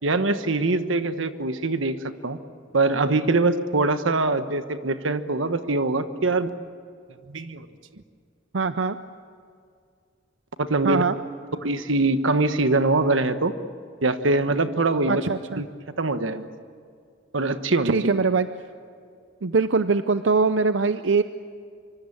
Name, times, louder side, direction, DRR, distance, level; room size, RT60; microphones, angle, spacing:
voice 1, 0.0-2.4 2.7-6.5 7.3-7.7 10.6-11.0 11.6-13.5 14.0-15.2 15.6-15.7 16.0-16.5 17.3-18.2, right 2 dB, 90° right, 10 dB, 1.3 m, -23 dB
voice 2, 8.5-9.0 10.8-11.2 15.1-15.6 17.8-18.5 19.4-21.2, right 4 dB, 70° right, 11 dB, 0.6 m, -22 dB
25.5 x 25.0 x 8.7 m, 2.3 s
head